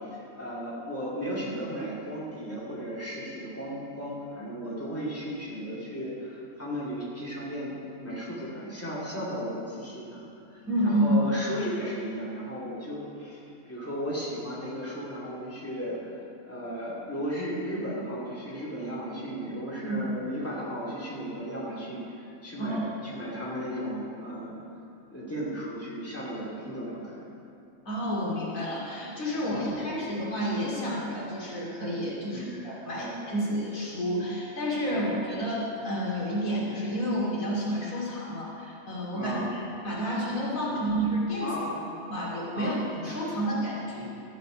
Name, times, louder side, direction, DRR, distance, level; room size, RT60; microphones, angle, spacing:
voice 1, 0.0-10.2 10.5-16.1 16.5-24.6 25.1-27.3 29.5-29.7 32.3-32.6 32.9-33.2 34.9-35.1 39.1-39.5 40.7-40.8 41.4-41.9 42.5-42.8, equal, 10° left, -7 dB, 2.5 m, -35 dB
voice 2, 10.7-11.2 19.8-20.0 22.6-22.8 27.9-41.5 42.1-44.0, equal, 80° left, -6 dB, 3.0 m, -30 dB
14.0 x 9.2 x 5.1 m, 2.6 s
omnidirectional pair, 1.4 m